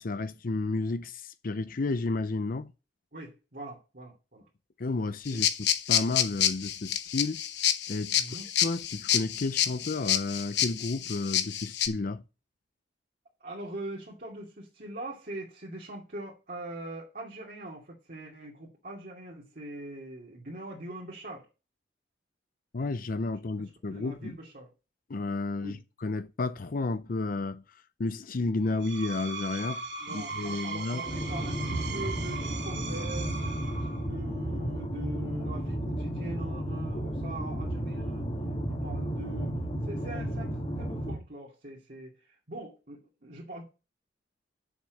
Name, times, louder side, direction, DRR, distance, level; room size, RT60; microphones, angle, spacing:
voice 1, 0.0-2.7 4.8-7.4 7.9-8.2 8.6-12.2 22.7-24.4 25.1-27.6 28.0-29.8 30.1-31.0, left 3 dB, 50° left, 0.6 m, -32 dB
voice 2, 3.1-4.4 5.3-5.4 8.1-8.5 13.4-21.5 23.6-24.7 25.6-25.8 30.0-38.3 38.7-43.6, right 1 dB, 50° right, 2.7 m, -42 dB
sound 1, 5.3-11.9, left 10 dB, 65° left, 1.0 m, -28 dB
Screech, 28.7-34.2, right 4 dB, 70° right, 1.9 m, -39 dB
sound 2, 31.0-41.2, right 1 dB, 35° left, 2.3 m, -33 dB
7.3 x 6.3 x 7.8 m
head